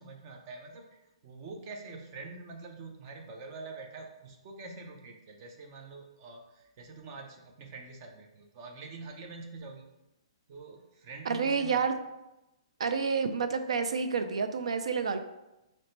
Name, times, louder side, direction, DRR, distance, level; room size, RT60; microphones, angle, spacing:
voice 1, 0.0-9.9 10.5-11.9, right 3 dB, 25° right, 2 dB, 0.4 m, -45 dB
voice 2, 11.3-11.9 12.8-15.2, right 5 dB, 80° right, 8 dB, 0.4 m, -29 dB
3.9 x 2.1 x 4.3 m, 0.94 s
hypercardioid pair, 175°, 3 cm